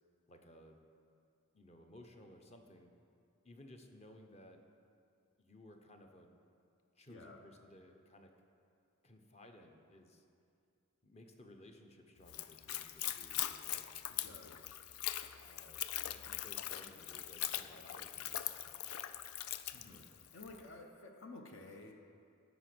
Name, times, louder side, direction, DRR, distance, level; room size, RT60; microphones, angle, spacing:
voice 1, 0.3-0.8 1.5-2.9 3.4-4.6 5.4-6.3 7.0-8.3 9.0-10.2 11.0-13.8 15.4-15.8 16.1-19.0 19.9-20.1, left 1 dB, 30° left, 4 dB, 0.8 m, -58 dB
voice 2, 7.1-7.4 14.1-14.7 19.7-21.9, left 2 dB, 60° left, 3 dB, 0.8 m, -53 dB
Splash splatter / Trickle dribble, 12.2-20.6, left 12 dB, 90° left, 0.4 m, -42 dB
13.5 x 5.2 x 6.1 m, 2.4 s
head